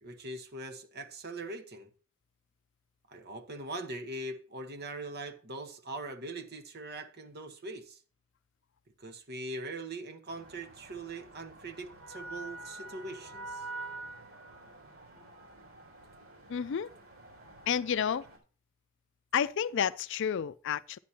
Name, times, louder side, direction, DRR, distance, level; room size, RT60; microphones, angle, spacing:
voice 1, 0.0-1.9 3.1-8.0 9.0-13.6, right 2 dB, 50° right, 1.2 m, -41 dB
sound 1, 10.3-18.4, right 2 dB, 70° right, 3.7 m, -47 dB
voice 2, 16.5-16.9 17.7-18.2 19.3-21.0, left 8 dB, 60° left, 0.4 m, -30 dB
11.0 x 9.4 x 2.8 m
head